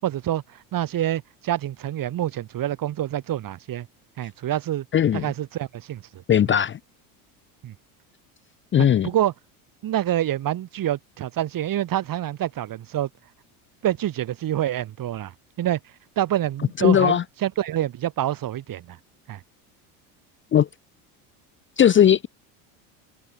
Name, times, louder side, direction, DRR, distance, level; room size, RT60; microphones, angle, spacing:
voice 1, 0.0-3.9 4.2-4.9 5.1-6.2 7.6-7.7 8.8-9.3 9.8-13.1 13.8-15.8 16.2-19.0 19.3-19.4, right 12 dB, 45° right, 6.9 m, -27 dB
voice 2, 4.9-5.3 6.3-6.8 8.7-9.1 16.8-17.2 20.5-20.7 21.8-22.3, left 9 dB, 25° left, 0.7 m, -18 dB
supercardioid pair, 120°, 46 cm